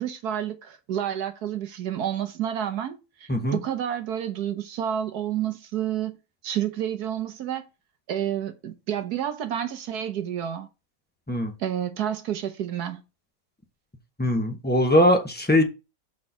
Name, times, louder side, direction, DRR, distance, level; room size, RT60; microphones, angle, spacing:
voice 1, 0.0-6.2 6.4-7.6 8.1-10.7 11.6-13.0, right 10 dB, 65° right, 1.2 m, -29 dB
voice 2, 3.3-3.6 11.3-11.5 14.2-15.6, left 1 dB, 10° left, 0.5 m, -21 dB
6.2 x 4.3 x 5.5 m
omnidirectional pair, 1.9 m